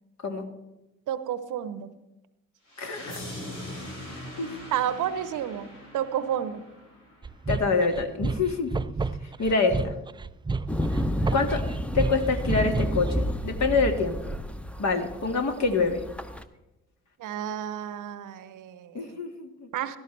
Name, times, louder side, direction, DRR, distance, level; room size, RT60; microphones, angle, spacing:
voice 1, 1.1-1.9 4.7-6.6 17.2-19.1 19.7-20.0, right 10 dB, 55° right, 13 dB, 0.9 m, -31 dB
sound 1, 2.7-7.6, left 1 dB, 85° left, 2.9 m, -42 dB
voice 2, 2.8-3.2 4.4-4.5 7.5-8.7 9.4-9.9 11.3-11.6 11.9-14.2 14.8-16.0 18.9-19.7, left 4 dB, 50° left, 4 dB, 2.0 m, -26 dB
sound 2, 7.2-13.1, right 3 dB, 15° right, 0.4 m, -31 dB
sound 3, 10.7-16.4, equal, 5° left, 0.9 m, -30 dB
16.5 x 13.5 x 3.3 m, 0.96 s
figure-of-eight pair, 40°, 36 cm